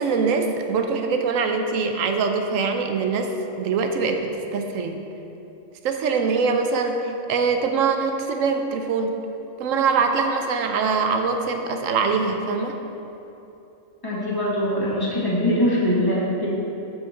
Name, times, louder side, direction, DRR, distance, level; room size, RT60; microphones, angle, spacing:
voice 1, 0.0-3.3 3.6-5.0 5.8-9.2 9.6-12.8, right 5 dB, 90° right, 5 dB, 1.0 m, -23 dB
voice 2, 14.0-16.5, equal, 15° left, -8 dB, 1.7 m, -22 dB
7.7 x 4.7 x 5.7 m, 2.9 s
omnidirectional pair, 1.3 m